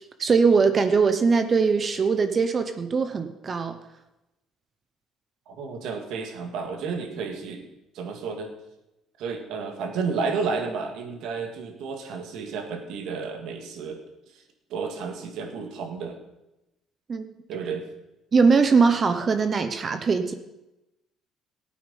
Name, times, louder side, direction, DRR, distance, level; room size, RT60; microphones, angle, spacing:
voice 1, 0.0-3.8 17.1-17.3 18.3-20.3, right 5 dB, 35° right, 9 dB, 0.8 m, -21 dB
voice 2, 5.5-7.7 7.9-8.5 9.2-14.0 14.3-14.4 14.7-16.2 17.5-17.9, right 5 dB, 75° right, 5 dB, 1.9 m, -31 dB
15.0 x 8.7 x 5.4 m, 0.95 s
cardioid pair, 120°, 0 cm